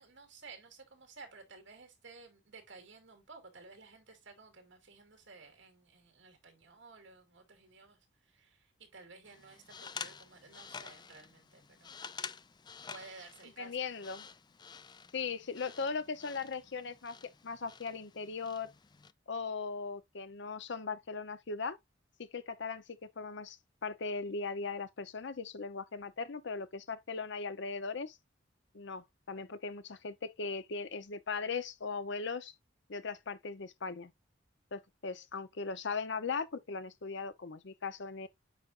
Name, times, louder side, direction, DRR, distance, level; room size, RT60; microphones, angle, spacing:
voice 1, 0.0-8.0 8.2-11.9 12.9-13.9 15.0-15.1, right 4 dB, 70° right, 2.7 m, -54 dB
sound 1, 9.2-19.1, left 6 dB, 25° left, 0.3 m, -49 dB
voice 2, 13.6-14.3 15.1-17.1 17.4-18.7 19.3-21.8 22.3-23.6 23.8-28.2 28.7-32.5 32.9-34.1 34.7-38.3, left 4 dB, 65° left, 0.8 m, -38 dB
9.1 x 5.2 x 2.5 m
head